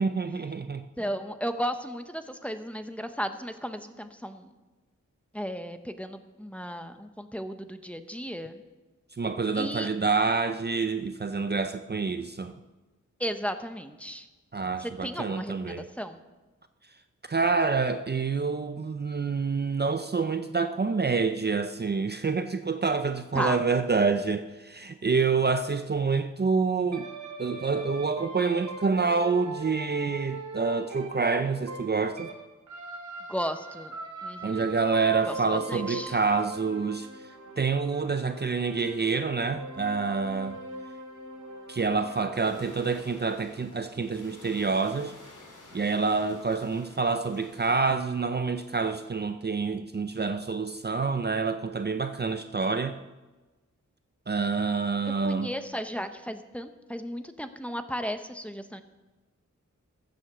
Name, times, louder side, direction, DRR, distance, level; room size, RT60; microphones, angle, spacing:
voice 1, 0.0-0.8 9.2-12.5 14.5-15.9 17.3-27.1 27.4-32.3 34.4-37.1 37.6-40.6 41.7-45.1 45.7-53.0 54.3-55.5, right 4 dB, 35° right, 0.6 m, -27 dB
voice 2, 1.0-4.5 5.3-8.6 9.6-9.9 13.2-14.3 14.8-16.2 23.3-23.6 33.3-34.0 34.2-34.6 35.2-36.2 55.2-58.8, equal, 5° left, 0.9 m, -35 dB
sound 1, 26.9-32.4 32.7-42.9, right 3 dB, 85° right, 2.8 m, -41 dB
sound 2, 42.3-47.8, left 2 dB, 85° left, 3.4 m, -51 dB
14.5 x 7.8 x 6.8 m
wide cardioid pair, 90°, 30 cm